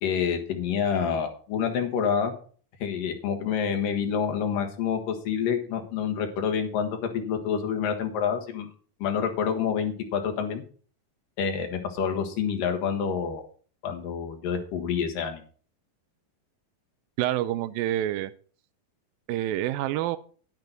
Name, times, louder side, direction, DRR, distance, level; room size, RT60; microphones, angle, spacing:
voice 1, 0.0-2.4 2.8-8.7 9.0-10.6 11.4-13.4 13.8-15.4, left 7 dB, 70° left, 4 dB, 3.1 m, -28 dB
voice 2, 17.2-18.3 19.3-20.2, right 13 dB, 85° right, 14 dB, 2.4 m, -27 dB
10.5 x 10.5 x 4.0 m, 0.42 s
omnidirectional pair, 4.1 m